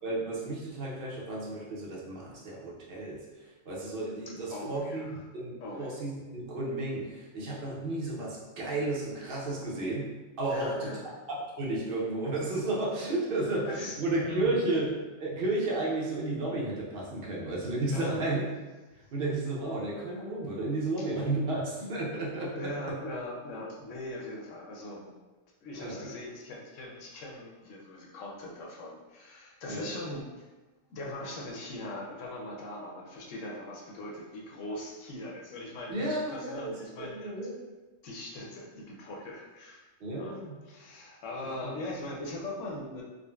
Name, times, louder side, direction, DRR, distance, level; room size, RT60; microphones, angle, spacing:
voice 1, 0.0-3.2 3.7-10.1 10.4-10.9 11.3-14.9 15.2-18.4 19.1-22.9 25.8-26.0 29.7-29.9 35.9-37.6 40.0-40.5 41.4-41.7, right 2 dB, 55° right, -4 dB, 0.8 m, -32 dB
voice 2, 4.3-5.2 5.6-5.9 10.5-11.1 13.6-14.0 14.3-14.7 17.9-18.3 21.0-21.1 22.5-25.1 25.6-30.5 30.9-37.4 38.0-39.9 40.1-40.4 40.7-43.0, left 1 dB, 75° left, -2 dB, 0.9 m, -40 dB
3.6 x 2.1 x 2.3 m, 1.2 s
omnidirectional pair, 1.3 m